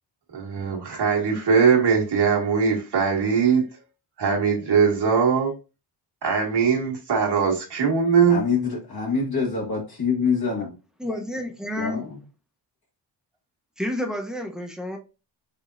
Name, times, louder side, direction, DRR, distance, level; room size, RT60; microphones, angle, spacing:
voice 1, 0.3-3.6 4.2-5.5 6.2-8.4, right 6 dB, 60° right, 1.6 m, -21 dB
voice 2, 8.3-10.7 11.8-12.2, left 5 dB, 55° left, 1.4 m, -25 dB
voice 3, 11.0-12.0 13.8-15.0, left 1 dB, ahead, 0.8 m, -30 dB
5.0 x 3.5 x 2.6 m
wide cardioid pair, 115°, 45 cm